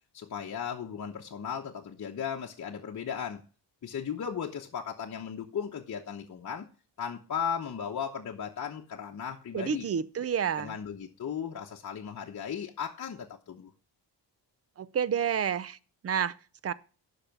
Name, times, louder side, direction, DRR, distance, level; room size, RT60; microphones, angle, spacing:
voice 1, 0.1-3.4 3.8-6.7 7.0-9.9 10.6-13.7, left 7 dB, 45° left, 1.0 m, -36 dB
voice 2, 9.5-10.8 14.8-15.8 16.0-16.4 16.6-16.7, right 8 dB, 35° right, 0.5 m, -29 dB
10.5 x 5.8 x 5.9 m
wide cardioid pair, 135°, 42 cm